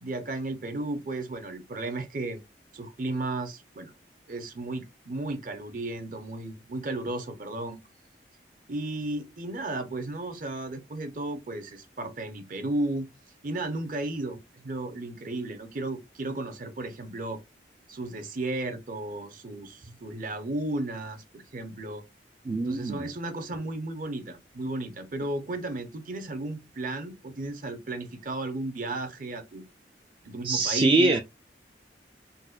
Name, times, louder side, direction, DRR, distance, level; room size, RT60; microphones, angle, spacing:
voice 1, 0.0-2.4 2.7-3.9 4.3-7.8 8.7-13.1 13.4-14.4 14.6-17.4 17.9-22.0 22.7-29.7 30.2-31.1, right 2 dB, 50° right, 0.7 m, -34 dB
voice 2, 22.5-23.1 30.4-31.2, right 3 dB, 30° right, 0.3 m, -23 dB
4.0 x 2.1 x 2.3 m
head